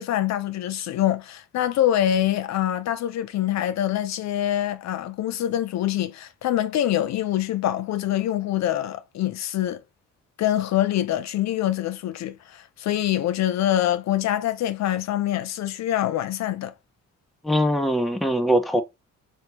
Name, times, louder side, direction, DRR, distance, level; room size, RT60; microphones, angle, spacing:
voice 1, 0.0-9.8 10.4-16.7, left 12 dB, 65° left, 0.5 m, -25 dB
voice 2, 17.4-18.8, equal, ahead, 0.5 m, -21 dB
3.2 x 3.2 x 2.8 m
cardioid pair, 90°, 30 cm